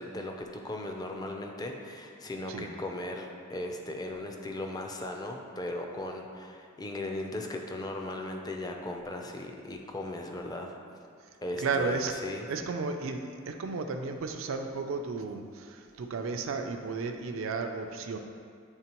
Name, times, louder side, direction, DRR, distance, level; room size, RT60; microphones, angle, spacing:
voice 1, 0.0-10.8 11.4-12.4, left 1 dB, 20° left, 2 dB, 0.4 m, -37 dB
voice 2, 11.6-12.1 12.5-18.2, right 4 dB, 85° right, 5 dB, 0.4 m, -33 dB
8.8 x 3.7 x 2.9 m, 2.2 s
head